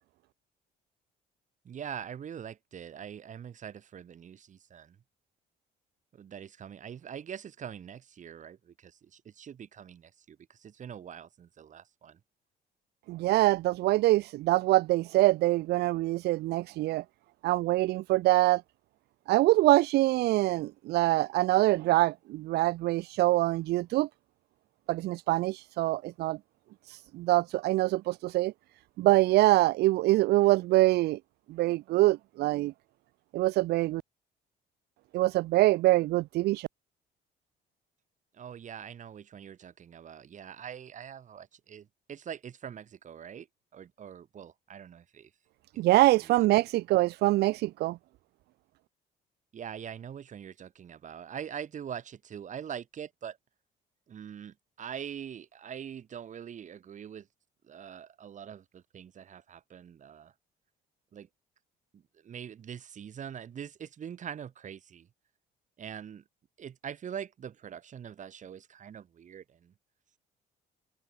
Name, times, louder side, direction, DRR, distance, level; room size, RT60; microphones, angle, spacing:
voice 1, 1.6-5.0 6.1-12.2 38.3-43.5 43.7-45.3 45.7-46.2 49.5-53.4 54.1-57.3 57.6-60.3 61.1-61.3 61.9-65.1 65.8-66.2 66.6-69.7, right 8 dB, 45° right, 6.3 m, -43 dB
voice 2, 13.1-17.0 17.4-18.6 19.3-24.1 24.9-26.4 26.9-28.5 29.0-31.2 31.5-32.7 33.3-34.0 35.1-36.7 45.8-48.0, right 17 dB, 80° right, 0.8 m, -24 dB
open air
cardioid pair, 110°, 17 cm